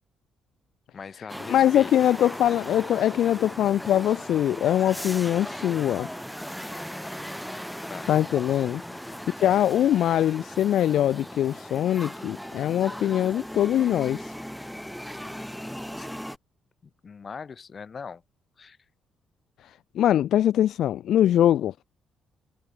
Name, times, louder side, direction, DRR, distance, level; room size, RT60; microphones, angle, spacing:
voice 1, 0.9-1.9 7.9-8.1 8.9-9.3 16.0-16.1 17.0-18.2 18.6-18.8, left 5 dB, 40° left, 6.5 m, -40 dB
sound 1, 1.3-16.4, equal, ahead, 2.4 m, -38 dB
voice 2, 1.5-6.1 8.1-8.8 9.3-14.3 19.6-21.7, left 11 dB, 75° left, 0.4 m, -22 dB
cardioid pair, 90°, 0 cm